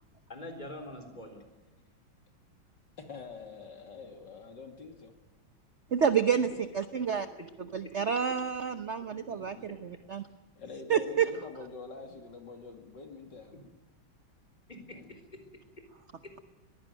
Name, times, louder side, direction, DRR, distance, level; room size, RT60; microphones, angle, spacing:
voice 1, 0.3-1.4 7.8-7.9 14.7-15.4 16.2-16.3, left 1 dB, 20° left, 5 dB, 4.0 m, -44 dB
voice 2, 3.0-5.1 9.3-9.7 10.6-13.7 14.9-15.1, left 4 dB, 60° left, 5 dB, 3.1 m, -46 dB
voice 3, 5.9-6.5 6.7-7.3 7.7-10.2 10.9-11.3, right 7 dB, 50° right, 11 dB, 0.9 m, -28 dB
21.5 x 16.0 x 9.1 m, 1.1 s
omnidirectional pair, 2.2 m